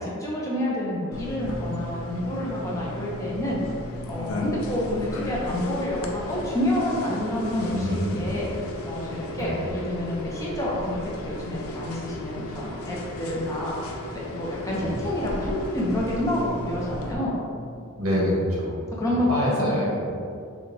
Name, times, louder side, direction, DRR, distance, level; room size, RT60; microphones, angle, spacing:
voice 1, 0.0-3.6 4.1-7.9 8.1-8.5 8.8-13.8 14.1-17.4 19.0-19.9, left 1 dB, 15° left, -5 dB, 0.6 m, -28 dB
sound 1, 1.1-17.1, left 1 dB, 75° left, 0.5 m, -35 dB
voice 2, 7.6-8.3 9.3-9.6 14.7-15.0 18.0-18.8 19.3-20.1, equal, 85° right, -5 dB, 1.3 m, -26 dB
6.0 x 2.3 x 3.3 m, 2.4 s
head